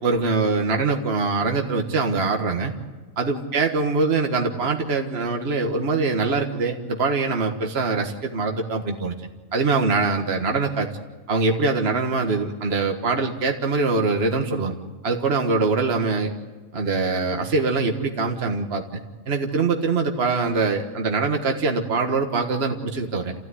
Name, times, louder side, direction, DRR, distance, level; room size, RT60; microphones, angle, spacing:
voice 1, 0.0-2.7 3.2-10.9 11.3-14.7 15.0-16.3 16.7-23.4, right 3 dB, 50° right, 3 dB, 1.8 m, -23 dB
28.0 x 15.5 x 9.8 m, 1.3 s
omnidirectional pair, 1.4 m